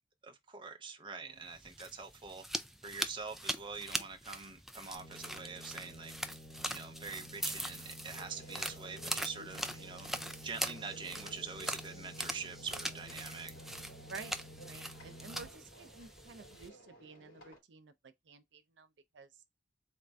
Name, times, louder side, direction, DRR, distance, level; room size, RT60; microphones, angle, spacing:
voice 1, 0.2-2.4 2.8-6.1 6.6-10.1 10.4-13.5, right 5 dB, 25° right, 0.7 m, -45 dB
sound 1, 1.5-16.7, right 1 dB, ahead, 0.3 m, -42 dB
sound 2, 4.9-15.5, equal, 35° left, 0.9 m, -52 dB
sound 3, 8.1-17.6, right 1 dB, 85° left, 2.8 m, -57 dB
voice 2, 14.0-14.4 14.7-18.9 19.1-19.3, right 4 dB, 80° right, 0.5 m, -51 dB
4.3 x 2.5 x 3.3 m
head